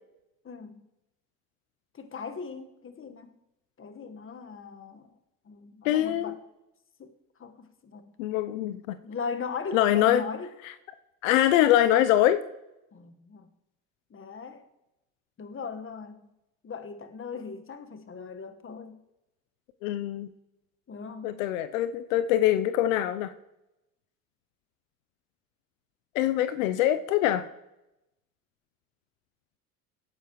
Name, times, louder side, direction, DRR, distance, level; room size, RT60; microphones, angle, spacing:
voice 1, 0.4-0.9 1.9-3.3 3.8-5.1 5.4-6.4 7.0-7.1 7.4-8.1 9.0-10.5 12.9-13.5 14.1-14.7 15.4-16.3 16.6-19.0 20.9-21.4, left 5 dB, 30° left, 8 dB, 1.4 m, -39 dB
voice 2, 5.8-6.3 8.2-9.0 9.7-10.2 11.2-12.4 19.8-20.3 21.2-23.3 26.1-27.4, left 12 dB, 85° left, 12 dB, 0.6 m, -23 dB
17.5 x 9.9 x 3.1 m, 0.92 s
hypercardioid pair, 70°, 39 cm